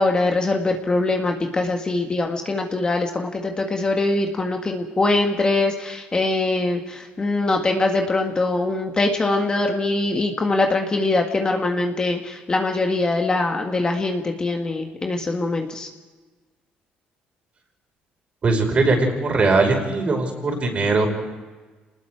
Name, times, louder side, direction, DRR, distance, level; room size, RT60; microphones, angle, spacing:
voice 1, 0.0-15.9, left 2 dB, 25° left, 3 dB, 1.7 m, -22 dB
voice 2, 18.4-21.1, right 3 dB, 40° right, 3 dB, 5.3 m, -20 dB
27.5 x 20.0 x 4.8 m, 1.3 s
cardioid pair, 110°, 3 cm